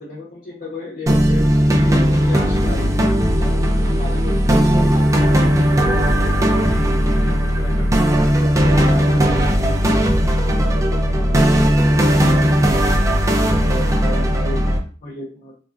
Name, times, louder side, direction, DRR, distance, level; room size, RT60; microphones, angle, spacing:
voice 1, 0.0-1.4 1.8-5.1 5.5-10.0 10.5-13.0 13.4-15.5, left 1 dB, 45° left, -4 dB, 0.7 m, -34 dB
sound 1, 1.1-14.8, equal, 15° right, 0.4 m, -16 dB
3.1 x 2.3 x 2.5 m, 0.40 s
head